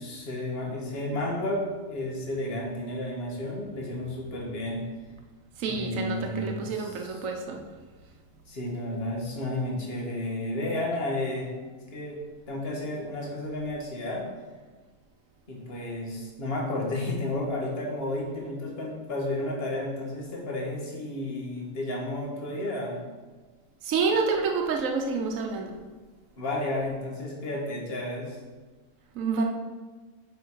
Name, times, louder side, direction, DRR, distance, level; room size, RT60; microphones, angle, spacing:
voice 1, 0.0-4.8 5.7-7.2 8.5-11.5 11.9-12.2 12.5-14.3 15.5-23.0 26.4-28.4, left 1 dB, 50° left, -2 dB, 1.7 m, -32 dB
voice 2, 5.6-7.6 23.8-25.7 29.1-29.4, right 4 dB, 75° right, 2 dB, 1.2 m, -28 dB
7.2 x 5.6 x 4.7 m, 1.3 s
omnidirectional pair, 1.4 m